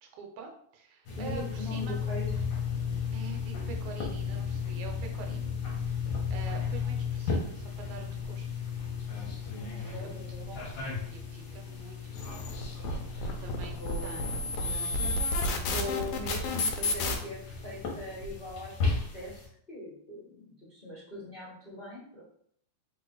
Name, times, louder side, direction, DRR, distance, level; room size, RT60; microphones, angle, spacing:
voice 1, 0.0-2.0 3.1-5.5 5.8-8.5 9.8-10.7 11.1-12.6 12.9-15.6 15.9-16.0, right 6 dB, 90° right, 3 dB, 2.3 m, -47 dB
sound 1, 1.1-19.5, left 5 dB, 60° left, 1.3 m, -35 dB
voice 2, 1.2-2.3 2.9-3.0 3.5-3.6 9.5-10.5 13.5-14.5 15.4-19.4 19.7-22.2, left 1 dB, 35° left, -9 dB, 0.8 m, -41 dB
sound 2, 12.2-17.2, left 2 dB, 80° left, 1.4 m, -31 dB
4.2 x 3.3 x 3.8 m, 0.65 s
omnidirectional pair, 3.3 m